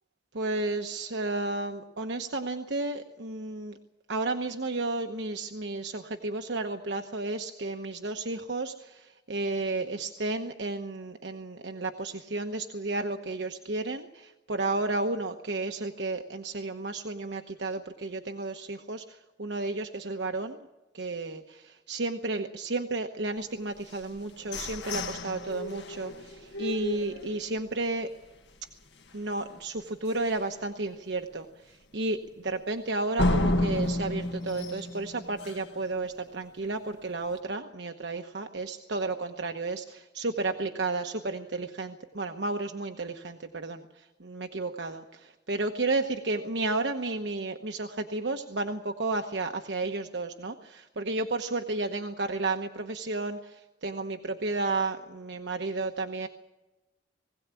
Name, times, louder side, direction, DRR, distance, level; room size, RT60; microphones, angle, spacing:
voice 1, 0.3-3.8 4.1-19.0 19.4-20.6 20.9-28.1 29.1-31.4 31.9-32.2 32.4-43.8 44.2-53.4 53.8-56.3, right 2 dB, 75° right, 5 dB, 1.1 m, -32 dB
sound 1, 23.9-27.8 28.2-28.3 28.7-29.1 29.5-29.6 30.1-30.2 33.2-35.8, left 1 dB, 75° left, 1.6 m, -31 dB
21.0 x 17.0 x 8.3 m, 1.1 s
head